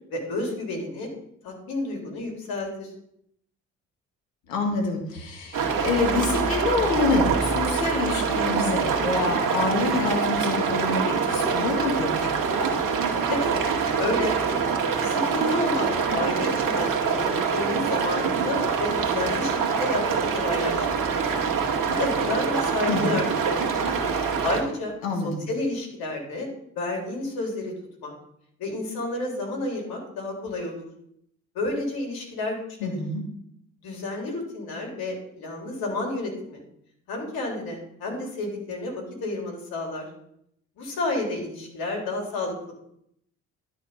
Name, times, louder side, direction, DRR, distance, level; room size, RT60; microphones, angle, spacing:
voice 1, 0.1-1.1 1.4-2.9 13.3-13.5 13.9-14.3 15.0-20.8 21.9-23.6 24.4-24.9 25.2-26.5 26.7-27.7 28.0-28.1 28.6-30.8 31.5-33.0 33.8-36.6 37.1-40.1 40.8-42.7, left 2 dB, 65° left, 0 dB, 3.7 m, -30 dB
voice 2, 4.5-12.4 22.9-23.2 25.0-25.3 32.8-33.2, left 3 dB, 80° left, 3 dB, 1.9 m, -26 dB
sound 1, 5.5-24.6, right 5 dB, 55° right, 2.0 m, -25 dB
11.5 x 5.9 x 5.6 m, 0.72 s
figure-of-eight pair, 45°, 39 cm